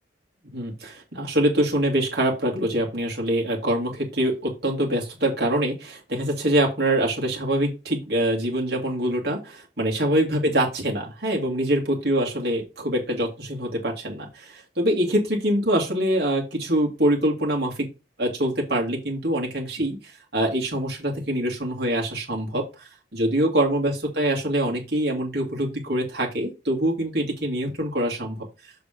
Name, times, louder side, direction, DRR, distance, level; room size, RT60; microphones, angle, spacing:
voice 1, 0.5-17.9 18.2-28.5, right 1 dB, 60° right, -1 dB, 2.3 m, -24 dB
7.2 x 4.0 x 5.1 m, 0.28 s
head